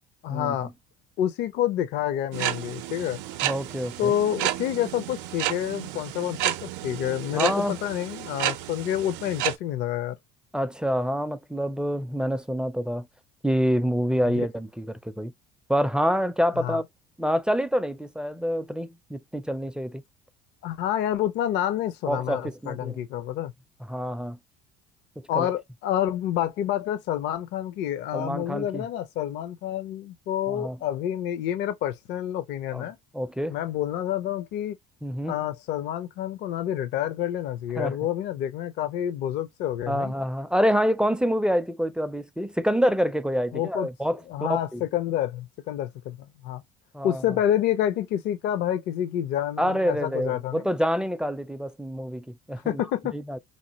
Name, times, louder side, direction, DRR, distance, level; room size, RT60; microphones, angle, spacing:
voice 1, 0.2-0.7 1.2-3.2 4.0-10.2 16.6-16.8 20.6-23.5 25.3-33.0 33.5-34.8 35.3-40.1 43.5-43.9 44.3-46.6 47.0-50.6 52.7-53.1, left 11 dB, 65° left, 0.6 m, -28 dB
sound 1, 2.3-9.6, right 13 dB, 70° right, 0.5 m, -31 dB
voice 2, 3.4-4.1 7.3-7.8 10.5-13.1 13.4-15.3 15.7-16.8 17.2-20.0 22.1-23.0 23.9-24.4 25.2-25.5 28.1-28.9 30.5-30.8 32.7-32.9 33.1-33.6 35.0-35.4 37.8-38.0 39.9-44.8 46.9-47.4 49.6-52.8 53.1-53.4, equal, 5° right, 0.4 m, -27 dB
3.1 x 2.4 x 2.8 m
supercardioid pair, 85°, 20 cm